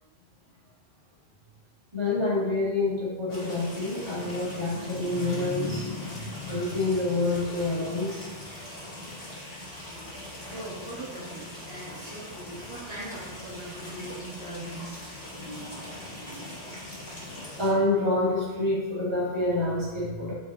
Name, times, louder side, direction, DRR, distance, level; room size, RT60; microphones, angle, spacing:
voice 1, 1.9-8.3 15.3-16.8 17.2-20.3, left 2 dB, 25° right, -8 dB, 2.4 m, -28 dB
sound 1, 3.3-17.7, left 1 dB, 60° left, 2.5 m, -42 dB
voice 2, 10.5-15.2, right 1 dB, 75° right, -7 dB, 2.2 m, -40 dB
7.3 x 5.3 x 3.9 m, 1.3 s
omnidirectional pair, 1.1 m